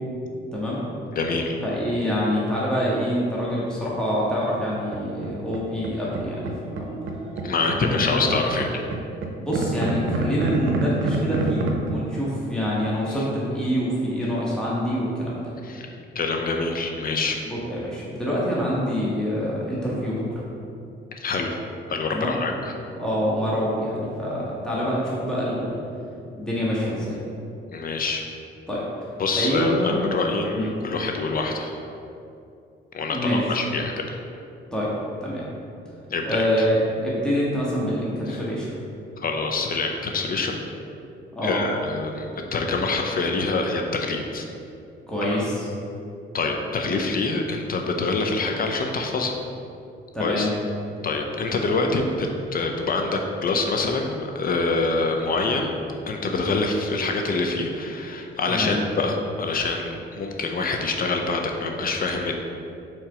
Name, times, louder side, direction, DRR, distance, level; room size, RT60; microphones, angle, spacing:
voice 1, 0.5-0.8 1.6-6.9 7.8-8.3 9.4-15.5 17.4-20.4 22.1-22.4 23.0-25.8 26.3-27.2 28.7-28.8 29.3-30.1 30.5-30.7 33.1-33.4 34.7-34.9 35.2-35.5 36.2-38.7 41.3-41.7 45.1-45.7 50.1-50.5 58.5-58.8, equal, 5° left, -7 dB, 1.5 m, -26 dB
voice 2, 1.1-1.6 7.4-8.7 15.6-17.4 21.2-21.6 21.9-22.7 27.7-28.2 29.2-31.7 32.9-34.2 36.1-36.5 38.3-38.4 39.2-40.6 41.4-44.5 46.3-49.4 50.2-50.5 51.0-62.4, left 3 dB, 45° left, 3 dB, 0.6 m, -25 dB
sound 1, 4.7-5.9 6.1-11.9, right 3 dB, 80° right, 0.7 m, -29 dB
4.6 x 4.4 x 5.0 m, 2.6 s
cardioid pair, 90°, 20 cm